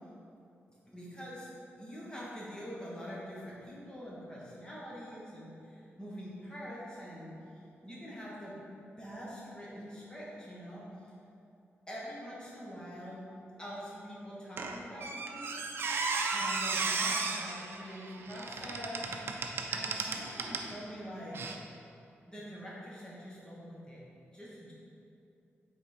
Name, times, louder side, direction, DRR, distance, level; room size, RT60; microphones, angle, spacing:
voice 1, 0.9-1.5 1.8-7.3 7.8-8.5 9.0-10.9 11.9-13.3 13.6-16.0 16.3-21.4 22.3-24.0 24.3-24.7, equal, 20° left, -6 dB, 1.5 m, -44 dB
Squeak, 14.6-20.7 21.3-21.5, right 4 dB, 60° right, 0.5 m, -35 dB
5.9 x 4.0 x 4.4 m, 2.7 s
wide cardioid pair, 125°, 4 cm